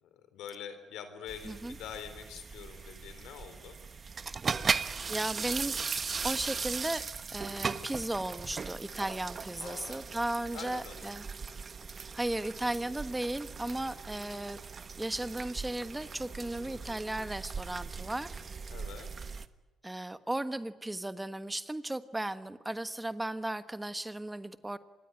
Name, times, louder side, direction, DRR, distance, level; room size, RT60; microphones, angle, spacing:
voice 1, 0.0-3.8 9.6-10.0 10.5-11.1 16.5-16.9 18.7-19.1, left 8 dB, 85° left, 10 dB, 4.0 m, -45 dB
sound 1, 1.3-19.5, right 5 dB, 40° right, 1.2 m, -38 dB
voice 2, 1.4-1.8 4.3-4.4 5.1-5.8 6.2-11.3 12.1-14.6 15.0-18.4 19.8-24.8, right 1 dB, 10° right, 12 dB, 1.3 m, -35 dB
26.5 x 21.5 x 9.6 m, 1.1 s
cardioid pair, 90°, 0 cm